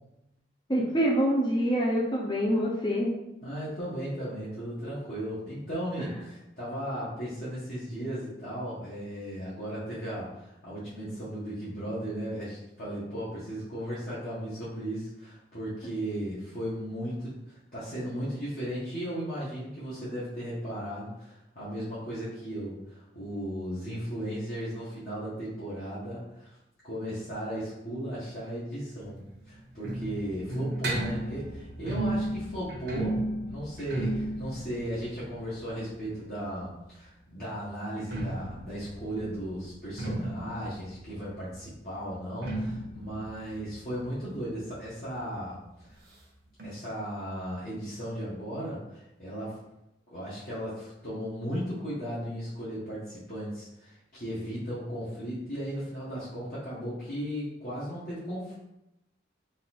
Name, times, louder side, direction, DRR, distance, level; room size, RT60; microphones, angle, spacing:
voice 1, 0.7-3.1, equal, 25° left, -3 dB, 0.6 m, -25 dB
voice 2, 3.4-26.6 26.8-33.2 33.5-45.6 45.9-46.0 46.6-49.6 50.1-58.5, equal, 50° left, -10 dB, 1.2 m, -36 dB
sound 1, 29.0-36.7 37.8-45.2 45.5-45.6 45.8-45.9 46.6-46.7, right 1 dB, 55° right, 0.9 m, -35 dB
4.0 x 2.5 x 4.1 m, 0.88 s
head